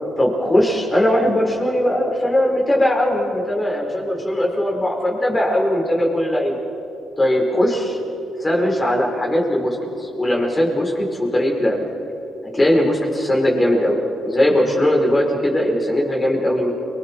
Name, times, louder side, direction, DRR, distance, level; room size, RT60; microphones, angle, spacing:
voice 1, 0.2-6.6 7.2-8.0 8.4-11.8 12.5-14.0 14.2-16.7, left 1 dB, 20° left, -1 dB, 5.0 m, -19 dB
29.5 x 21.5 x 4.7 m, 2.9 s
cardioid pair, 90°, 0 cm